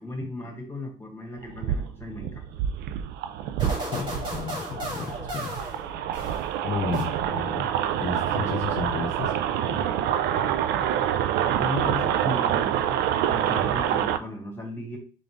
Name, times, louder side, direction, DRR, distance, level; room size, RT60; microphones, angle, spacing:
voice 1, 0.0-2.4 10.7-11.0 11.6-15.0, left 2 dB, 15° left, 2 dB, 1.7 m, -36 dB
sound 1, 1.4-14.2, right 10 dB, 80° right, 0.4 m, -27 dB
sound 2, 3.6-6.6 6.9-7.6, right 1 dB, 30° right, 2.2 m, -35 dB
voice 2, 3.9-5.6 6.6-7.7 8.0-10.0 10.3-10.4, left 6 dB, 45° left, 2 dB, 0.6 m, -33 dB
3.9 x 3.8 x 3.5 m, 0.39 s
cardioid pair, 110°, 17 cm